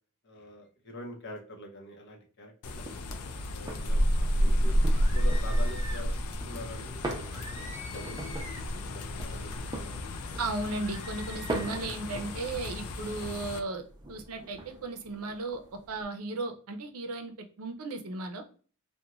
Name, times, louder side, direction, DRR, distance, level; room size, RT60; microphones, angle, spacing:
voice 1, 0.2-3.1 3.5-4.8 5.1-6.2 6.5-7.5 7.9-10.4, left 1 dB, 50° left, 2 dB, 0.7 m, -45 dB
sound 1, 2.6-13.6, equal, 90° left, 0.4 m, -31 dB
sound 2, 2.6-16.1, right 2 dB, 20° right, 0.5 m, -43 dB
sound 3, 4.9-6.1 7.3-8.7 10.7-11.9, equal, 30° left, 0.9 m, -46 dB
voice 2, 10.4-13.8 14.1-15.6 15.9-18.4, right 3 dB, 80° right, 6 dB, 0.5 m, -35 dB
2.9 x 2.1 x 2.4 m, 0.40 s
head